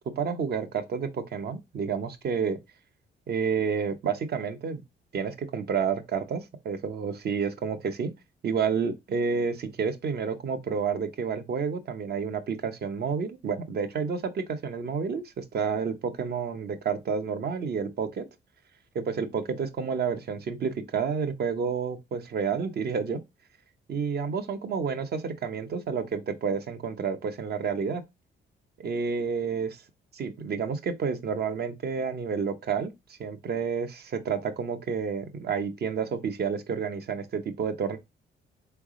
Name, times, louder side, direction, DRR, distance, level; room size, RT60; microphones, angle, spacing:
voice 1, 0.2-2.6 3.3-4.8 5.1-8.1 8.4-18.2 18.9-23.2 23.9-28.0 28.8-29.8 30.1-32.9 33.2-38.0, right 6 dB, 55° right, 0.8 m, -30 dB
4.0 x 3.4 x 3.7 m
cardioid pair, 90°, 20 cm